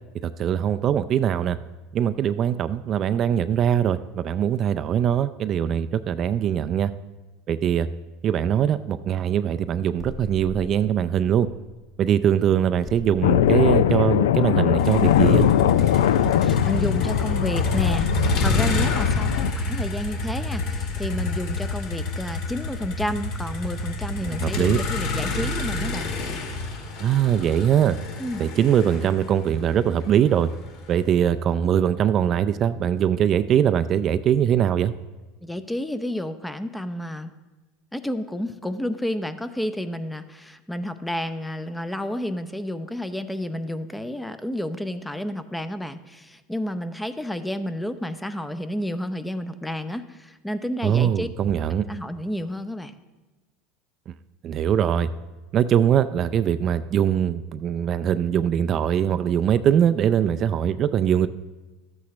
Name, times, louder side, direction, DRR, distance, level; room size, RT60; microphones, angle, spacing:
voice 1, 0.2-1.6 1.9-6.9 7.5-7.9 8.2-11.5 12.0-15.5 24.2-24.8 27.0-28.0 28.4-30.5 30.9-34.9 50.8-51.8 54.4-55.1 55.5-61.3, right 9 dB, 40° right, 12 dB, 0.4 m, -22 dB
sound 1, 10.0-12.3 12.9-17.5, left 2 dB, 30° left, 1.3 m, -41 dB
sound 2, 13.2-19.5, left 10 dB, 90° left, 0.3 m, -21 dB
Motor vehicle (road), 14.8-30.9, left 3 dB, 60° left, 1.9 m, -28 dB
voice 2, 16.1-26.1 28.2-28.4 35.4-37.3 37.9-51.3 51.9-52.9, left 1 dB, 5° left, 11 dB, 0.6 m, -30 dB
12.5 x 8.5 x 3.2 m, 1.2 s
supercardioid pair, 105°, 0 cm